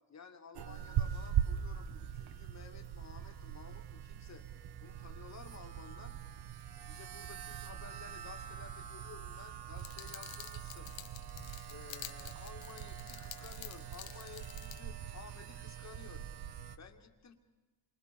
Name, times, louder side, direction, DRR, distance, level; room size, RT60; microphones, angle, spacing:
voice 1, 0.1-4.5 4.8-6.2 6.9-10.9 11.7-16.3 16.8-17.3, left 6 dB, 35° left, 6 dB, 2.1 m, -54 dB
sound 1, 0.6-16.8, right 9 dB, 55° right, 1.2 m, -41 dB
sound 2, 9.8-14.8, left 13 dB, 75° left, 1.3 m, -50 dB
27.5 x 24.5 x 5.2 m, 1.2 s
supercardioid pair, 80°, 46 cm